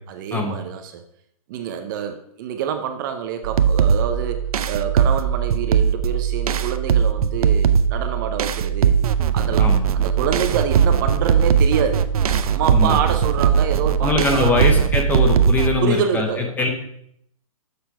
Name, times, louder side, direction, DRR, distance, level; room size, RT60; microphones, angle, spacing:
voice 1, 0.1-1.0 1.5-9.0 9.3-12.1 12.4-14.7 15.8-16.7, right 8 dB, 35° right, 7 dB, 0.6 m, -26 dB
sound 1, 3.4-15.8, right 7 dB, 75° right, 0.6 m, -19 dB
voice 2, 14.0-16.7, left 3 dB, 10° left, 3 dB, 0.7 m, -22 dB
6.8 x 5.5 x 4.6 m, 0.71 s
hypercardioid pair, 155°, 19 cm